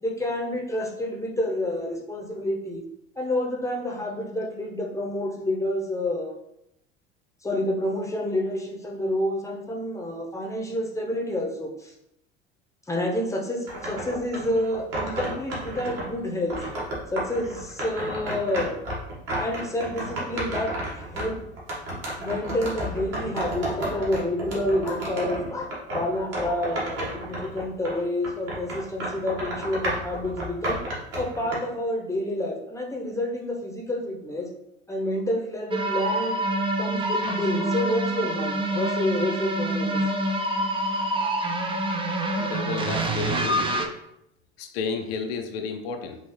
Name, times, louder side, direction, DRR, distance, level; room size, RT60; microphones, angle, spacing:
voice 1, 0.0-2.8 3.2-6.3 7.4-11.9 12.9-16.6 17.1-18.8 19.4-21.4 22.0-30.8 31.2-34.5 34.9-36.4 36.8-40.0, left 1 dB, 10° left, 0 dB, 0.8 m, -29 dB
sound 1, 13.7-16.1 16.5-28.0 28.2-31.6, right 1 dB, 45° right, 1.7 m, -32 dB
sound 2, 35.7-43.9, right 1 dB, 15° right, 0.5 m, -26 dB
voice 2, 42.4-43.6 44.6-46.2, left 5 dB, 65° left, 4 dB, 0.6 m, -31 dB
5.4 x 2.7 x 3.2 m, 0.81 s
figure-of-eight pair, 70°, 33 cm